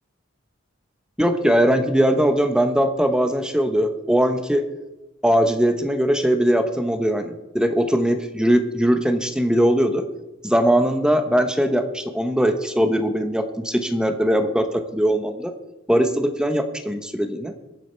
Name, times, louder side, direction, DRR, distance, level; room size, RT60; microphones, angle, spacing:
voice 1, 1.2-4.6 5.2-10.0 10.4-15.5 15.9-17.5, equal, 5° right, 7 dB, 1.0 m, -20 dB
23.0 x 8.6 x 4.5 m, 1.1 s
head